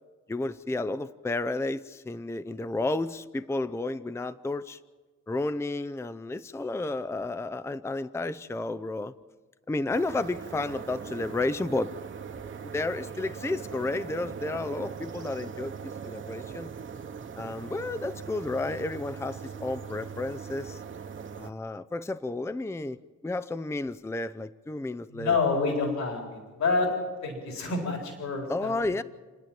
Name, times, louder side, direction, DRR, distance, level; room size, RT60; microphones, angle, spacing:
voice 1, 0.3-4.8 5.3-9.1 9.7-11.9 12.6-15.7 16.0-16.7 17.4-20.8 21.4-25.4 28.5-29.0, left 2 dB, 10° left, 14 dB, 0.6 m, -32 dB
sound 1, 9.9-21.5, right 6 dB, 40° right, 1.3 m, -40 dB
voice 2, 25.1-26.9 27.2-28.7, left 4 dB, 65° left, 2 dB, 4.3 m, -28 dB
29.5 x 10.0 x 9.2 m, 1.3 s
cardioid pair, 90°, 30 cm